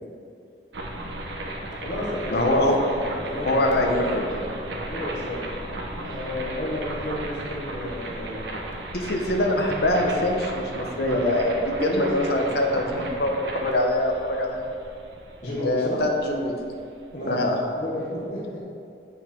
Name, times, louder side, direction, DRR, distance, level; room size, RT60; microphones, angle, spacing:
sound 1, 0.7-17.6, right 1 dB, 80° right, 0.9 m, -35 dB
voice 1, 1.8-2.6 3.2-4.0 4.9-5.4 6.0-8.5 11.8-12.1 15.4-16.0 17.1-17.4 17.7-18.6, left 1 dB, 45° left, -11 dB, 1.6 m, -32 dB
voice 2, 2.3-2.8 3.4-4.5 8.9-14.7 15.6-16.6 17.2-17.6, left 1 dB, 60° left, 1 dB, 1.0 m, -24 dB
8.3 x 5.5 x 4.5 m, 2.4 s
head